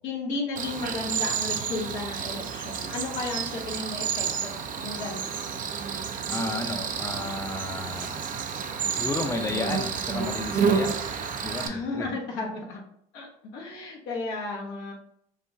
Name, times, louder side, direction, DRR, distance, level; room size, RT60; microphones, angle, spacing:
voice 1, 0.0-5.3 11.6-12.8 13.1-14.9, left 3 dB, 80° left, -1 dB, 0.9 m, -34 dB
Cricket, 0.6-11.7, right 6 dB, 45° right, 0.5 m, -30 dB
voice 2, 6.3-8.2 8.9-10.9 11.4-12.1, left 2 dB, 15° left, 3 dB, 0.5 m, -32 dB
3.8 x 2.2 x 2.6 m, 0.72 s
supercardioid pair, 75°, 19 cm